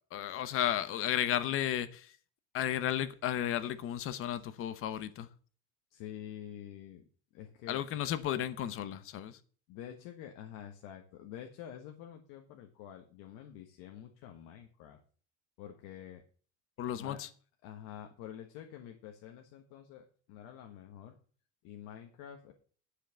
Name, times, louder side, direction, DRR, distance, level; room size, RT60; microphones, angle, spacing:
voice 1, 0.1-2.1 2.5-5.3 7.7-9.4 16.8-17.3, left 11 dB, 40° left, 0.9 m, -33 dB
voice 2, 5.9-7.0 7.3-7.9 9.7-15.0 15.6-16.2 17.0-17.2 17.6-21.2 21.6-22.5, left 10 dB, 75° left, 1.4 m, -48 dB
10.0 x 5.8 x 7.0 m
cardioid pair, 175°, 32 cm